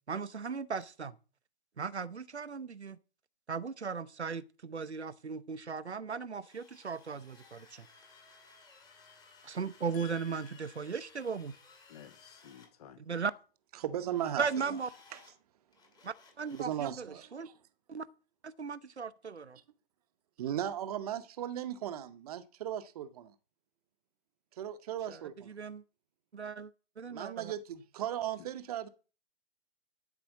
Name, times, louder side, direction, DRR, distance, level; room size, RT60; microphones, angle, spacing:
voice 1, 0.1-1.2 1.8-3.0 3.5-7.9 9.4-11.5 13.0-13.3 14.4-14.9 16.0-17.5 17.9-18.1 18.4-19.6 25.1-25.8 26.3-27.5, right 5 dB, 80° right, 0.8 m, -37 dB
Drill, 6.4-12.7 14.1-15.3 15.7-16.8, left 4 dB, 10° left, 2.1 m, -59 dB
voice 2, 9.9-10.8 11.9-13.0 28.4-28.5, left 11 dB, 35° left, 1.3 m, -53 dB
voice 3, 13.8-14.5 15.1-15.2 16.5-17.5 20.4-23.3 24.6-25.5 27.1-28.9, right 10 dB, 35° right, 1.0 m, -37 dB
12.0 x 5.0 x 7.3 m
figure-of-eight pair, 125°, 33 cm